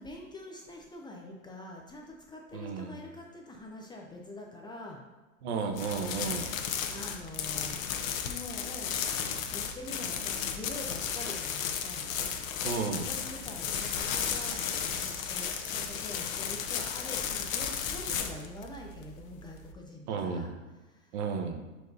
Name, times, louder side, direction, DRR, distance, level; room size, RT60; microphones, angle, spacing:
voice 1, 0.0-5.1 6.9-9.1 9.5-12.5 12.9-20.5 20.8-21.2, left 1 dB, 10° left, 0 dB, 0.5 m, -45 dB
voice 2, 2.5-3.0 5.4-6.5 12.6-13.1 20.1-20.5 21.1-21.6, right 5 dB, 50° right, 5 dB, 1.1 m, -33 dB
sound 1, 5.7-19.7, left 7 dB, 70° left, 1.0 m, -34 dB
Rattle (instrument), 13.5-17.4, right 2 dB, 20° right, 1.7 m, -49 dB
10.5 x 4.6 x 2.7 m, 1.1 s
hypercardioid pair, 120°, 42 cm